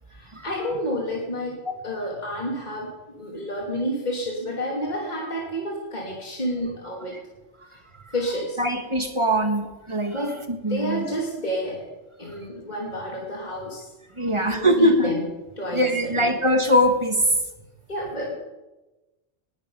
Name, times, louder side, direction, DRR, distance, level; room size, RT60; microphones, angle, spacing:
voice 1, 0.1-2.9 3.2-7.2 8.1-8.6 10.1-10.4 10.7-11.9 12.2-13.9 14.3-15.3 15.6-16.4 17.9-18.3, equal, 40° left, -2 dB, 2.7 m, -30 dB
voice 2, 8.6-10.2 10.6-11.1 14.2-15.1 15.7-17.4, equal, 25° right, 5 dB, 1.6 m, -21 dB
19.0 x 11.0 x 5.5 m, 1.1 s
omnidirectional pair, 1.2 m